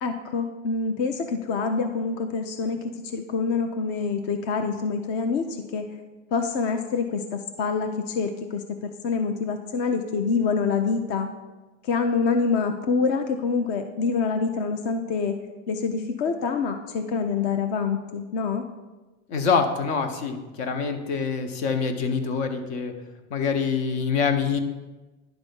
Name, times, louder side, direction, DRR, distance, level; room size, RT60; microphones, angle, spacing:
voice 1, 0.0-5.8 6.3-8.6 9.0-11.3 11.8-15.3 15.7-18.6, left 5 dB, 30° left, 6 dB, 0.4 m, -26 dB
voice 2, 19.3-22.9 23.3-24.6, left 5 dB, 60° left, 6 dB, 1.1 m, -25 dB
10.5 x 3.5 x 5.3 m, 1.1 s
supercardioid pair, 150°, 37 cm